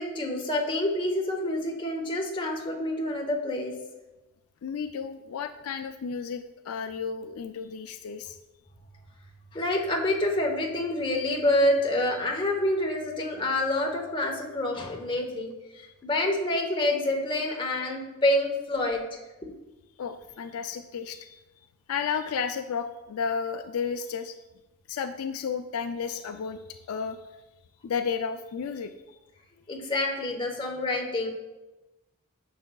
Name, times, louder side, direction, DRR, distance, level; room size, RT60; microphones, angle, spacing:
voice 1, 0.0-3.7 9.5-15.5 16.0-19.0 29.7-31.3, left 1 dB, 25° left, 0 dB, 1.0 m, -27 dB
voice 2, 4.6-8.4 15.7-15.9 20.0-21.4 21.9-24.4 24.9-27.2 27.8-28.9, left 6 dB, 75° left, 8 dB, 0.4 m, -33 dB
10.5 x 6.2 x 2.3 m, 1.1 s
head